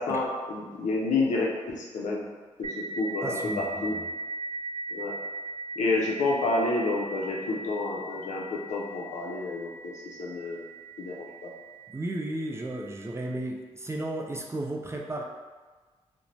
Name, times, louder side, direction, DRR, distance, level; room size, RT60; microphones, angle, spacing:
voice 1, 0.0-2.2 2.6-3.9 4.9-5.2 5.8-10.6 11.0-11.5, left 2 dB, 75° left, -2 dB, 0.5 m, -29 dB
sound 1, 2.6-11.9, right 2 dB, 55° right, 0.7 m, -38 dB
voice 2, 3.2-4.0 11.9-15.2, right 1 dB, 20° right, 1 dB, 0.4 m, -34 dB
2.5 x 2.1 x 3.0 m, 1.3 s
supercardioid pair, 50°, 12 cm